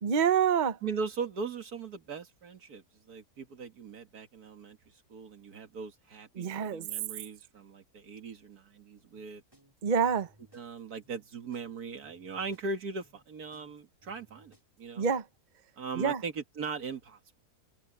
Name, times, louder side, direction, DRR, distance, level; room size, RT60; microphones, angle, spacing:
voice 1, 0.0-0.8 6.3-6.9 9.8-10.3 15.0-15.3 15.9-16.2, right 7 dB, 35° right, 0.9 m, -27 dB
voice 2, 0.8-4.8 5.1-9.4 10.5-15.1 15.8-17.4, right 4 dB, 90° right, 2.3 m, -39 dB
sound 1, 9.1-15.2, equal, 15° right, 5.0 m, -64 dB
omnidirectional pair, 1.6 m